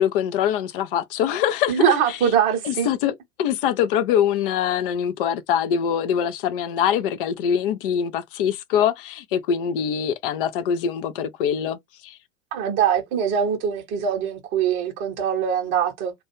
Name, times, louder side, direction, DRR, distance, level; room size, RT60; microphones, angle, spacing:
voice 1, 0.0-2.2 2.6-11.8 12.0-12.2, left 9 dB, 45° left, 0.4 m, -23 dB
voice 2, 1.7-2.9 12.5-16.1, right 8 dB, 30° right, 0.8 m, -22 dB
2.3 x 2.2 x 2.9 m
figure-of-eight pair, 85°, 42 cm